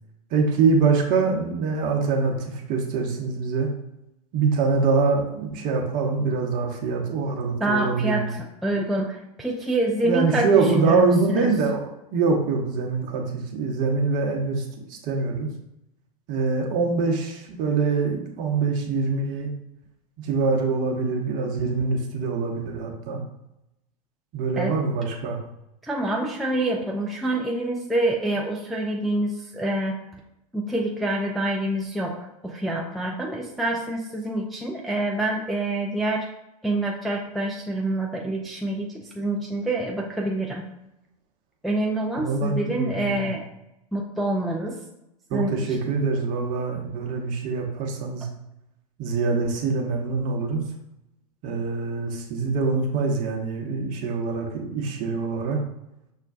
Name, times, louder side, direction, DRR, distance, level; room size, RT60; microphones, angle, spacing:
voice 1, 0.3-3.7 4.3-8.3 10.0-15.5 16.3-19.5 20.2-23.2 24.3-25.4 42.2-43.3 45.3-48.3 49.0-50.6 51.4-55.6, right 4 dB, 40° right, 2 dB, 0.9 m, -24 dB
voice 2, 7.6-11.5 24.6-24.8 25.8-30.0 30.5-36.3 36.6-40.6 41.6-43.5 43.9-44.8 45.3-45.7, right 1 dB, ahead, -1 dB, 0.3 m, -26 dB
6.4 x 2.2 x 2.5 m, 0.88 s
figure-of-eight pair, 90°, 20 cm